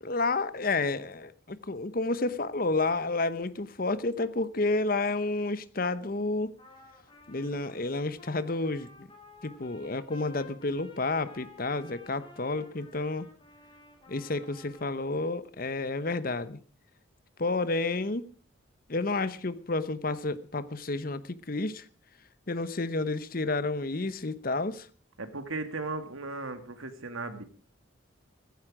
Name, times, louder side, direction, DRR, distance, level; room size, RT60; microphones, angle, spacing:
voice 1, 0.0-6.5 7.3-9.1 9.4-13.3 14.1-16.6 17.4-18.2 18.9-21.9 22.5-24.9, left 3 dB, 45° left, 0.9 m, -30 dB
Trumpet, 6.6-15.1, left 2 dB, 25° left, 3.3 m, -53 dB
voice 2, 25.2-27.4, right 3 dB, 90° right, 2.2 m, -36 dB
15.5 x 15.0 x 4.9 m
head